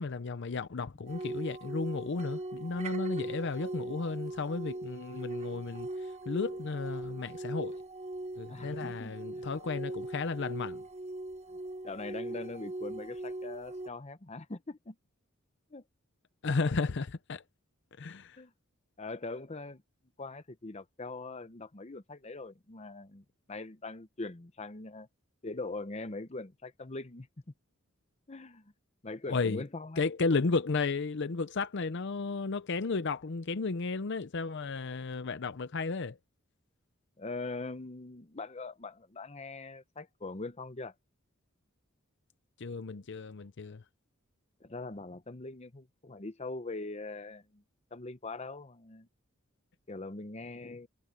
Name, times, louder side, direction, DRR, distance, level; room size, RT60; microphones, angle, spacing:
voice 1, 0.0-7.8 8.4-10.8 16.4-17.4 18.0-18.4 29.3-29.6 30.0-36.2 42.6-43.8, left 4 dB, 60° left, 0.6 m, -33 dB
sound 1, 1.1-13.9, right 2 dB, 35° right, 1.3 m, -40 dB
voice 2, 8.5-9.4 11.8-15.0 15.7-15.8 18.4-18.5 19.0-19.8 20.2-25.1 25.4-27.3 28.3-28.7 29.0-30.0 37.2-40.9 44.6-47.6 47.9-49.1 49.9-50.9, left 3 dB, 30° left, 0.9 m, -42 dB
head